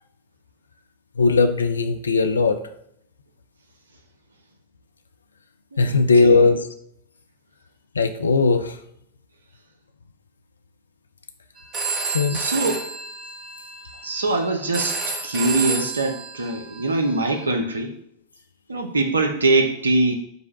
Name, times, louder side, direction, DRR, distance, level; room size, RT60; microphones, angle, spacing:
voice 1, 1.2-2.6 5.8-6.6 8.0-8.8 12.1-12.4, left 4 dB, 75° left, 7 dB, 0.4 m, -18 dB
voice 2, 5.7-6.4 12.3-12.8 14.0-17.9 18.7-20.1, right 2 dB, 75° right, 5 dB, 0.6 m, -23 dB
Telephone, 11.6-17.5, right 4 dB, 30° right, 0.9 m, -30 dB
5.1 x 2.1 x 4.6 m, 0.72 s
figure-of-eight pair, 90°, 0 cm